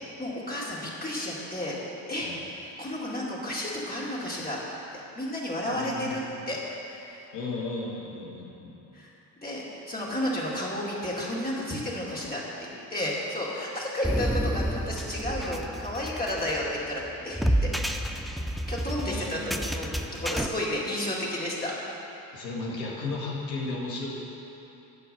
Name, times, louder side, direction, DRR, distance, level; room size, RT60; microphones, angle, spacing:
voice 1, 0.2-1.8 2.1-2.3 2.6-4.6 5.2-6.6 6.8-7.2 8.9-9.1 9.4-17.7 18.7-21.7, left 1 dB, 20° left, -6 dB, 2.4 m, -32 dB
voice 2, 5.7-6.3 7.3-8.8 19.0-19.8 22.3-24.1, left 3 dB, 85° left, -4 dB, 1.9 m, -35 dB
sound 1, 14.0-20.5, equal, ahead, 0.4 m, -30 dB
11.5 x 4.6 x 7.7 m, 3.0 s
hypercardioid pair, 60°, 48 cm